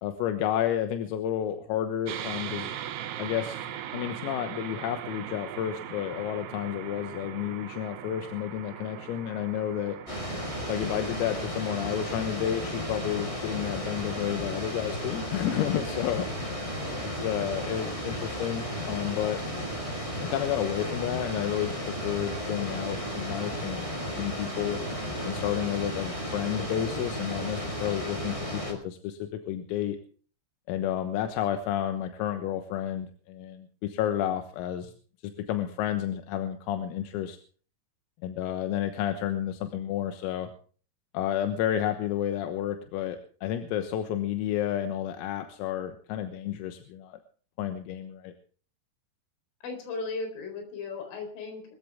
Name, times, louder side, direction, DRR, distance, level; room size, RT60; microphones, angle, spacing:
voice 1, 0.0-2.7 3.2-3.7 3.9-10.0 10.7-16.7 17.0-19.4 20.3-21.8 22.0-24.8 25.3-30.0 30.7-34.9 35.2-37.4 38.2-40.5 41.1-47.2 47.6-48.3, left 11 dB, 85° left, 7 dB, 4.0 m, -31 dB
sound 1, 2.1-13.3, right 10 dB, 70° right, 2.9 m, -40 dB
sound 2, 10.1-28.7, equal, 10° left, 4.9 m, -34 dB
voice 2, 49.6-51.6, left 4 dB, 70° left, 5 dB, 6.7 m, -36 dB
24.5 x 14.0 x 3.6 m, 0.42 s
omnidirectional pair, 6.0 m